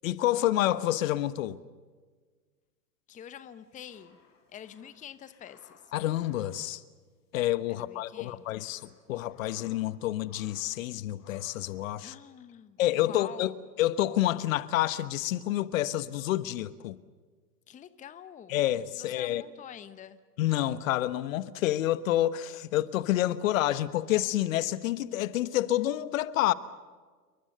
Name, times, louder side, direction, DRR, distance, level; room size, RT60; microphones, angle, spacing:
voice 1, 0.0-1.6 5.9-6.8 7.3-8.8 9.1-12.1 12.8-13.5 13.8-17.0 18.5-19.4 20.4-26.5, left 14 dB, 50° left, 1.3 m, -28 dB
voice 2, 3.1-4.2 4.5-5.7 7.7-8.6 12.0-13.6 17.7-18.6 19.0-20.2, left 9 dB, 15° left, 1.0 m, -47 dB
sound 1, 3.4-7.5 7.7-7.9 8.4-10.0 10.2-10.8 11.2-11.8, left 6 dB, 30° left, 7.9 m, -60 dB
29.0 x 23.0 x 6.7 m
figure-of-eight pair, 105°, 50 cm